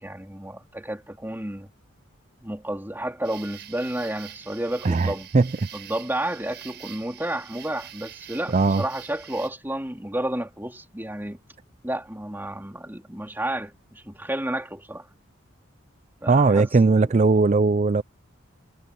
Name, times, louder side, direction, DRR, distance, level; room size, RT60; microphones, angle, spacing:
voice 1, 0.0-1.7 2.4-5.3 5.7-11.4 11.8-15.1 16.2-17.1, right 1 dB, 10° right, 3.6 m, -31 dB
sound 1, 3.2-9.5, right 11 dB, 55° right, 6.5 m, -45 dB
voice 2, 4.8-5.5 8.5-8.8 16.3-18.0, right 3 dB, 35° right, 0.4 m, -19 dB
head